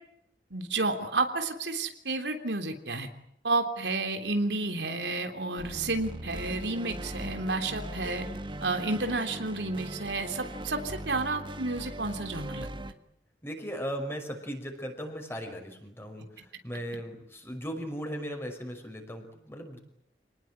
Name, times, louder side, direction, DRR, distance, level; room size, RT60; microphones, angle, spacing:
voice 1, 0.5-3.1 3.4-8.3 8.6-12.7, right 3 dB, 80° right, 6 dB, 3.3 m, -31 dB
sound 1, 5.6-12.9, right 1 dB, 30° right, 1.5 m, -39 dB
voice 2, 13.4-19.8, equal, 15° left, 5 dB, 5.6 m, -37 dB
28.0 x 19.5 x 9.1 m, 0.76 s
head